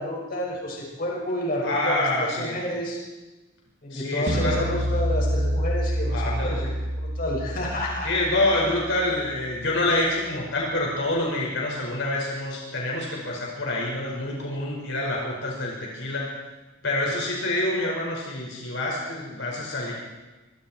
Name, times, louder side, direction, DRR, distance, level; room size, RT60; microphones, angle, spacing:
voice 1, 0.0-3.0 3.8-6.6 7.2-8.1, left 1 dB, 40° left, -2 dB, 6.1 m, -30 dB
voice 2, 1.6-2.6 3.9-4.9 6.1-6.8 8.0-16.4 16.8-19.9, left 2 dB, 60° left, -2 dB, 5.6 m, -27 dB
sound 1, 4.3-9.6, equal, 40° right, 0.9 m, -28 dB
26.0 x 24.5 x 4.6 m, 1.1 s
head